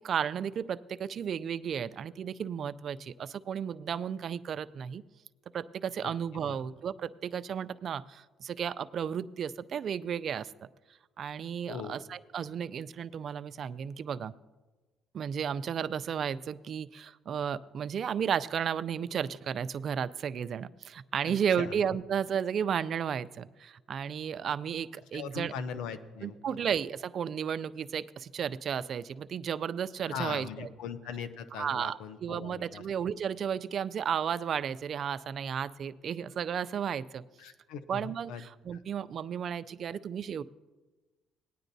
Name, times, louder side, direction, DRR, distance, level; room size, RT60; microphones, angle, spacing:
voice 1, 0.0-5.0 5.5-10.5 11.2-14.3 15.1-25.5 26.2-30.7 31.6-37.2 37.9-40.4, right 8 dB, 50° right, 14 dB, 0.3 m, -33 dB
voice 2, 6.0-6.7 11.6-12.0 21.2-21.7 25.1-26.6 30.1-32.9 37.4-38.4, left 6 dB, 85° left, 11 dB, 0.7 m, -40 dB
18.5 x 9.8 x 2.7 m, 1.2 s
cardioid pair, 105°, 0 cm